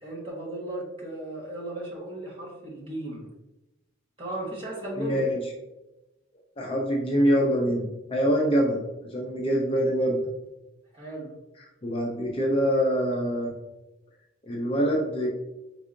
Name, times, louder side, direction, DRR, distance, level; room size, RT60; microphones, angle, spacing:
voice 1, 0.0-3.3 4.2-5.2 10.9-11.3, right 1 dB, 25° right, -4 dB, 1.3 m, -36 dB
voice 2, 5.0-5.4 6.6-8.8 9.1-10.3 11.8-13.5 14.4-15.3, equal, 25° left, -1 dB, 0.5 m, -24 dB
4.8 x 3.6 x 2.5 m, 0.97 s
head